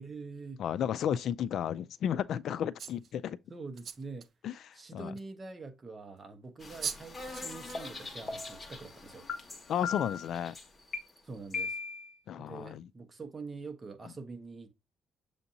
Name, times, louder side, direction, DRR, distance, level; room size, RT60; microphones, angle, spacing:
voice 1, 0.0-0.6 3.5-4.3 4.7-9.3 11.2-11.8 12.4-14.7, right 4 dB, 30° right, 1.1 m, -45 dB
voice 2, 0.6-3.4 4.4-5.1 9.7-10.6 12.3-12.9, left 9 dB, 70° left, 0.3 m, -33 dB
sound 1, 2.8-3.1 3.8-4.3 5.2-5.3 6.5-6.6 6.8-7.0 7.3-7.8 8.3-8.5, right 6 dB, 60° right, 0.6 m, -39 dB
sound 2, 6.6-11.6, left 3 dB, 25° left, 1.3 m, -46 dB
sound 3, 7.7-7.8 8.3-8.7 9.3-9.4 9.8-10.3 10.9-11.0 11.5-12.1, left 5 dB, 50° left, 1.4 m, -36 dB
7.0 x 2.8 x 2.6 m
cardioid pair, 90°, 0 cm